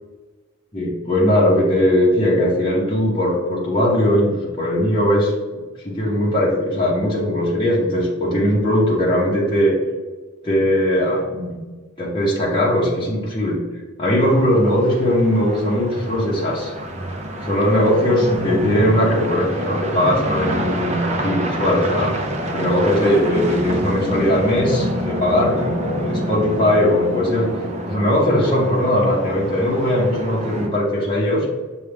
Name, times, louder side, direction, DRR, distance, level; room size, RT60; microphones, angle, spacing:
voice 1, 0.7-5.3 5.8-9.7 10.4-11.6 12.0-13.6 14.0-16.7 17.4-22.1 22.5-27.5 27.9-31.5, left 1 dB, 25° left, -6 dB, 0.8 m, -19 dB
sound 1, 14.1-30.7, equal, 35° right, 0.5 m, -27 dB
6.7 x 2.3 x 3.4 m, 1.3 s
head